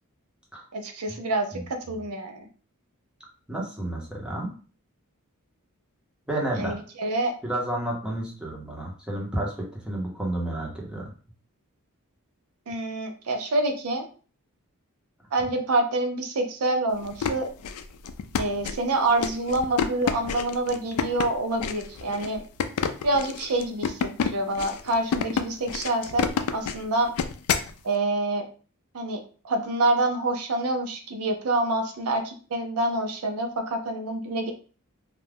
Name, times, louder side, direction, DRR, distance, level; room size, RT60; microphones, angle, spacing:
voice 1, 0.7-2.5 6.6-7.3 12.7-14.1 15.3-17.5 18.4-22.4 23.0-27.1 27.8-28.5 28.9-34.5, right 2 dB, 75° right, 5 dB, 0.6 m, -27 dB
voice 2, 3.5-4.5 6.3-6.7 7.4-11.1, right 1 dB, 5° right, -3 dB, 0.8 m, -31 dB
sound 1, 17.0-27.7, left 6 dB, 75° left, 0.3 m, -29 dB
2.4 x 2.2 x 3.3 m, 0.39 s
head